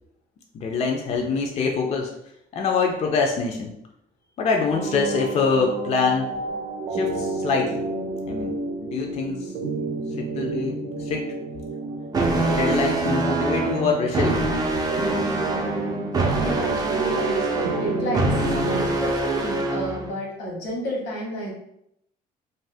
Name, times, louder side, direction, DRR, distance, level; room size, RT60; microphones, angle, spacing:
voice 1, 0.5-2.1 2.5-3.7 4.4-6.3 6.9-7.9 8.3-8.5 8.9-9.5 10.2-11.3 12.5-14.5, left 4 dB, 40° left, 1 dB, 0.4 m, -24 dB
sound 1, 4.7-18.9, right 2 dB, 70° right, 0.6 m, -30 dB
sound 2, 12.1-20.1, right 3 dB, 25° right, 0.4 m, -25 dB
voice 2, 16.4-21.5, equal, 90° left, -3 dB, 1.2 m, -31 dB
2.7 x 2.0 x 3.3 m, 0.77 s
cardioid pair, 110°, 17 cm